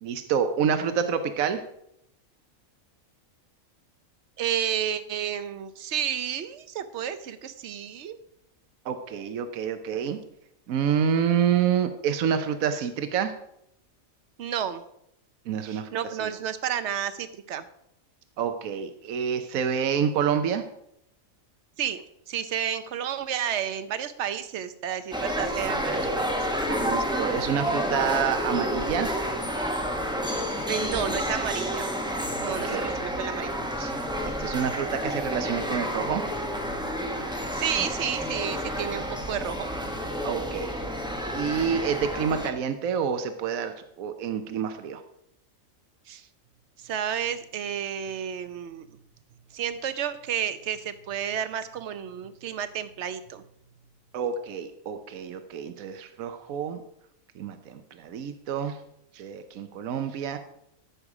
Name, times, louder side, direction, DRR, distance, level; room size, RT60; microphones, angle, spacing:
voice 1, 0.0-1.6 8.9-10.2 10.7-13.3 15.5-15.9 16.2-16.3 18.4-20.6 26.6-29.1 32.4-32.9 34.2-36.2 40.2-40.7 41.3-45.0 54.1-56.8 57.4-58.8 59.2-60.4, right 7 dB, 80° right, 8 dB, 1.2 m, -28 dB
voice 2, 4.4-8.2 14.4-14.8 15.6-17.6 21.8-26.3 30.7-31.9 32.4-33.5 33.8-33.9 37.5-39.7 46.1-46.2 46.8-48.9 49.5-53.4, right 9 dB, 60° right, 12 dB, 1.0 m, -31 dB
sound 1, 25.1-42.5, equal, 5° right, 1.0 m, -30 dB
13.5 x 6.8 x 4.9 m, 0.76 s
omnidirectional pair, 1.4 m